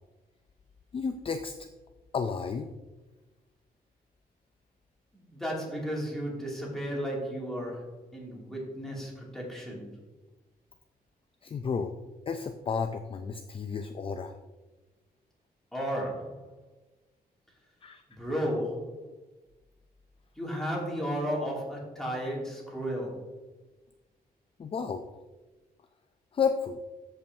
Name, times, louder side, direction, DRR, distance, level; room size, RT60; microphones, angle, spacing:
voice 1, 0.9-1.5 2.1-2.7 11.4-11.9 12.3-14.3 17.8-18.0 24.6-25.1 26.3-26.8, left 6 dB, 35° left, 7 dB, 0.4 m, -31 dB
voice 2, 5.1-9.9 15.7-16.4 18.2-18.9 20.4-23.3, equal, 5° left, -4 dB, 2.5 m, -34 dB
13.5 x 5.6 x 2.7 m, 1.1 s
wide cardioid pair, 135°, 16 cm